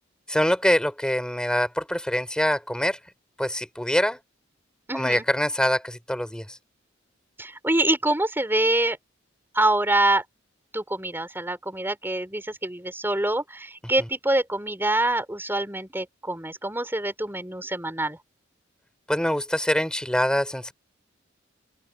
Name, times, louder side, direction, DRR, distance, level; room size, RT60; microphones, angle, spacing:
voice 1, 0.3-3.0 3.4-4.2 4.9-6.6 19.1-20.7, equal, 5° left, 3.1 m, -24 dB
voice 2, 4.9-5.3 7.4-9.0 9.5-10.2 10.7-18.2, right 1 dB, 10° right, 4.4 m, -25 dB
open air
head